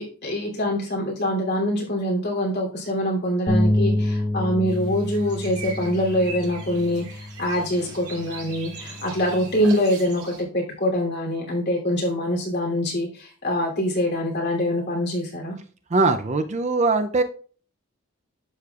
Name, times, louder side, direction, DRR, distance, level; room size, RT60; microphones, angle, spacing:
voice 1, 0.0-15.6, equal, 50° left, -2 dB, 2.9 m, -24 dB
sound 1, 3.5-9.7, left 1 dB, 20° left, 1.0 m, -28 dB
sound 2, 4.7-10.4, right 4 dB, 85° right, 3.2 m, -41 dB
voice 2, 15.9-17.2, right 3 dB, 30° right, 8 dB, 0.4 m, -21 dB
11.5 x 6.6 x 2.4 m, 0.41 s
head